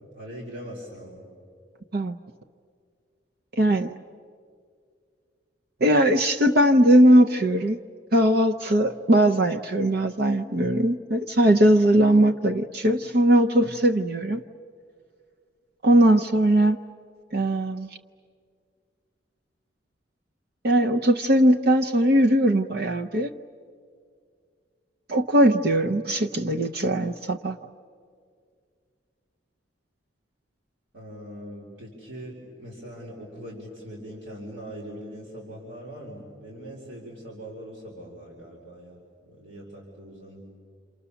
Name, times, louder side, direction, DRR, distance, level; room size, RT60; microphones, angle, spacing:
voice 1, 0.1-1.2 30.9-39.0 39.3-40.4, equal, 80° right, -4 dB, 4.6 m, -41 dB
voice 2, 3.6-4.0 5.8-7.8 8.1-14.4 15.8-16.8 17.3-17.9 20.6-23.3 25.1-27.6, right 1 dB, 50° right, 5 dB, 0.7 m, -20 dB
29.0 x 28.5 x 7.0 m, 2.2 s
head